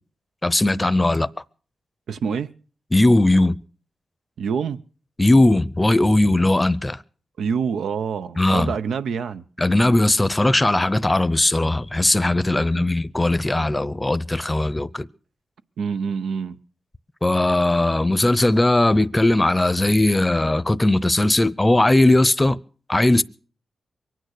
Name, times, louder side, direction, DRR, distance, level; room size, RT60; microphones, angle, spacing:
voice 1, 0.4-1.3 2.9-3.6 5.2-7.0 8.4-8.7 9.6-15.1 17.2-22.6 22.9-23.2, left 1 dB, 20° left, 0.7 m, -18 dB
voice 2, 2.1-2.5 4.4-4.8 7.4-9.4 12.5-12.9 15.8-16.6, right 6 dB, 85° right, 0.7 m, -26 dB
23.0 x 9.2 x 6.5 m
cardioid pair, 65°, 0 cm